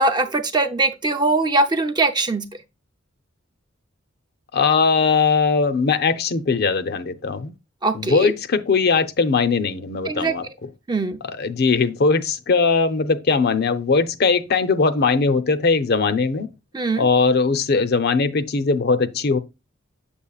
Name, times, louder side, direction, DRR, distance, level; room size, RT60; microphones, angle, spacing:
voice 1, 0.0-2.4 7.8-8.3 10.1-10.5 10.9-11.2 16.7-17.0, right 2 dB, 20° right, 0.6 m, -21 dB
voice 2, 4.5-7.5 7.9-10.7 11.2-16.5 17.0-19.4, left 4 dB, 55° left, 0.6 m, -20 dB
7.1 x 7.0 x 2.3 m
head